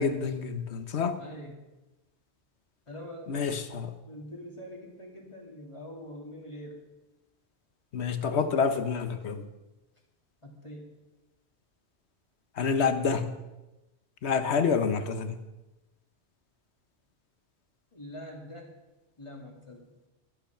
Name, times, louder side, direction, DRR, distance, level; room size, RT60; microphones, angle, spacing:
voice 1, 0.0-1.2 3.3-3.9 7.9-9.5 12.6-13.4 14.2-15.4, left 5 dB, 80° left, 9 dB, 1.3 m, -28 dB
voice 2, 1.2-1.6 2.9-3.4 4.1-6.8 10.4-11.0 17.9-18.8 19.2-19.9, equal, 25° left, 0 dB, 2.5 m, -44 dB
13.0 x 10.5 x 5.8 m, 1.0 s
omnidirectional pair, 1.1 m